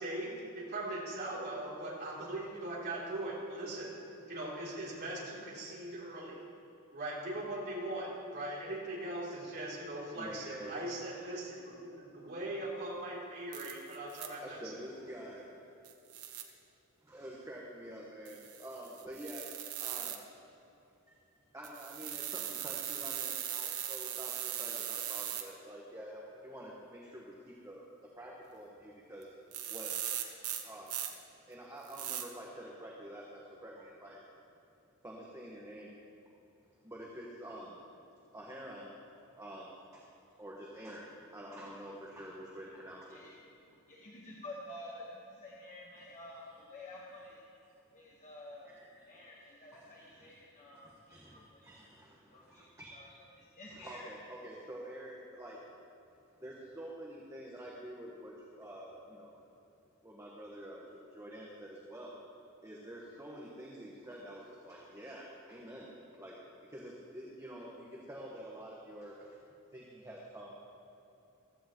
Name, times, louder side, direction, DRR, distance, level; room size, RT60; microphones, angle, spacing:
voice 1, 0.0-3.9 4.3-6.4 6.9-14.6, right 1 dB, 50° right, -6 dB, 3.1 m, -40 dB
voice 2, 10.1-10.9 14.4-15.6 17.0-19.5 19.8-20.3 21.1-21.2 21.5-27.4 27.6-27.8 28.2-29.3 29.7-29.9 30.6-31.0 31.5-34.2 35.0-35.9 36.8-37.8 38.3-39.0 39.3-40.0 40.4-43.2 48.6-49.1 49.7-50.3 50.8-53.2 53.7-55.6 56.4-59.3 60.0-62.1 62.6-66.4 66.7-69.4 69.7-70.5, right 1 dB, 15° right, -4 dB, 1.3 m, -48 dB
sound 1, 13.5-14.3 15.8-16.4 18.3-20.2 21.6-25.4 29.2-29.3 29.5-31.1 31.9-32.2, right 10 dB, 90° right, 1.1 m, -39 dB
voice 3, 43.1-47.4 47.9-48.8 49.0-51.6 52.3-52.6 52.9-53.1 53.4-54.0, left 1 dB, 35° left, -4 dB, 1.3 m, -50 dB
16.0 x 14.0 x 3.0 m, 3.0 s
head